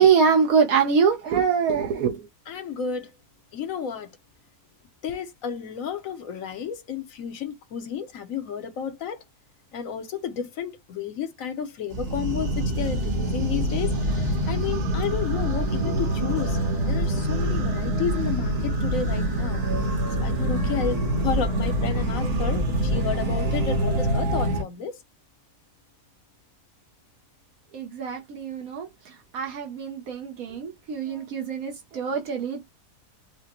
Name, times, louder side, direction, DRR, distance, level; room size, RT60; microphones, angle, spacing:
voice 1, 0.0-2.2 27.7-28.9 29.3-32.7, right 6 dB, 70° right, 1.1 m, -23 dB
voice 2, 2.5-3.1 3.5-4.1 5.0-9.2 9.7-16.6 16.9-19.6 20.2-24.9, left 7 dB, 65° left, 1.1 m, -32 dB
sound 1, 11.9-24.6, right 1 dB, 50° right, 1.3 m, -25 dB
4.9 x 2.1 x 2.9 m
omnidirectional pair, 1.7 m